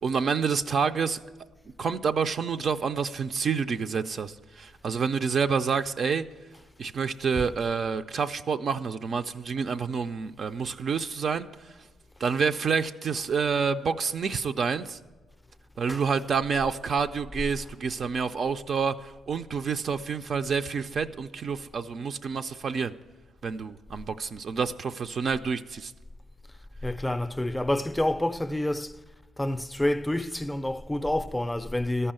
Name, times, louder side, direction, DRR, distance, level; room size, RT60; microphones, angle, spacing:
voice 1, 0.0-1.2 1.8-6.2 6.8-11.5 12.2-15.0 15.8-22.9 23.4-25.9, right 5 dB, 50° right, 0.4 m, -28 dB
voice 2, 26.8-28.9 29.4-32.1, left 1 dB, 10° left, 0.4 m, -28 dB
13.5 x 5.5 x 8.8 m
cardioid pair, 90°, 0 cm